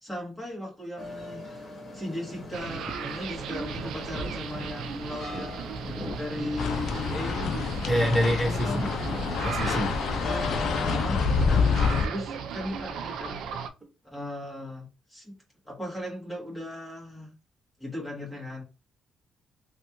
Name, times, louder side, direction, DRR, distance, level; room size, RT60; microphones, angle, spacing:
voice 1, 0.0-1.7 1.9-5.7 6.2-7.5 8.4-8.9 10.2-11.7 12.1-13.4 14.1-15.3 15.6-17.3 17.8-18.6, left 1 dB, 10° left, -3 dB, 1.6 m, -37 dB
sound 1, 1.0-10.9, left 1 dB, 45° left, 1.3 m, -40 dB
sound 2, 2.5-13.7, right 6 dB, 80° right, 0.4 m, -37 dB
sound 3, 6.6-12.1, left 5 dB, 65° left, 0.4 m, -27 dB
voice 2, 7.9-8.9 9.4-9.9, equal, 15° right, -1 dB, 1.5 m, -25 dB
3.2 x 2.4 x 2.9 m, 0.29 s
cardioid pair, 90°, 0 cm